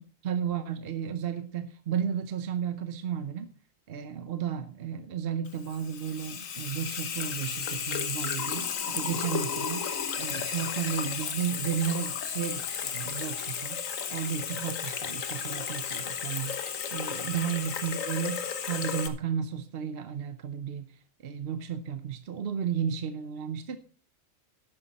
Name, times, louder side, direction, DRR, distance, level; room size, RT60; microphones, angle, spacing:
voice 1, 0.0-3.5 3.9-9.9 10.2-13.8 14.1-16.6 16.9-23.8, right 8 dB, 55° right, 11 dB, 0.9 m, -33 dB
Water tap faucet / Sink (filling or washing), 5.5-19.1, left 7 dB, 85° left, 1.5 m, -33 dB
12.0 x 9.4 x 4.1 m, 0.41 s
omnidirectional pair, 1.3 m